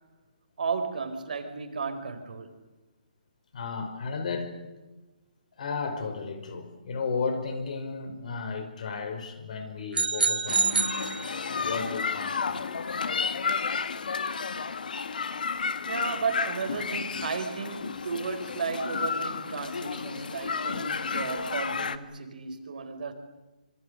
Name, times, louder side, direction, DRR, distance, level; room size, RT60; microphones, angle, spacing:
voice 1, 0.6-2.5 15.2-15.3 15.8-23.1, right 5 dB, 65° right, 8 dB, 4.9 m, -34 dB
voice 2, 3.5-4.6 5.6-10.9 11.6-12.8, left 4 dB, 55° left, 8 dB, 5.4 m, -34 dB
sound 1, 9.9-11.8, right 5 dB, 85° right, 1.3 m, -27 dB
sound 2, 10.5-22.0, left 5 dB, 70° left, 1.8 m, -32 dB
26.5 x 25.5 x 6.7 m, 1.1 s
hypercardioid pair, 160°, 5 cm